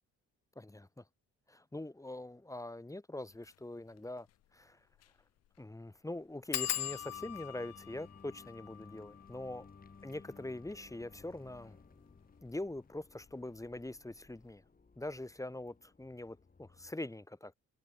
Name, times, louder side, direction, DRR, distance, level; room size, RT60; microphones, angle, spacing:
voice 1, 0.6-1.0 1.5-4.3 4.5-4.8 5.6-9.7 10.0-11.8 12.4-14.6 15.0-17.5, left 1 dB, 10° left, 1.9 m, -43 dB
sound 1, 3.3-3.5 4.0-4.1 4.3-4.4 4.9-5.2 5.4-5.5 6.5-11.8 12.5-13.0 13.3-13.7 13.9-14.0, left 13 dB, 55° left, 0.6 m, -43 dB
sound 2, 6.6-16.9, left 4 dB, 30° left, 6.6 m, -59 dB
open air
cardioid pair, 90°, 30 cm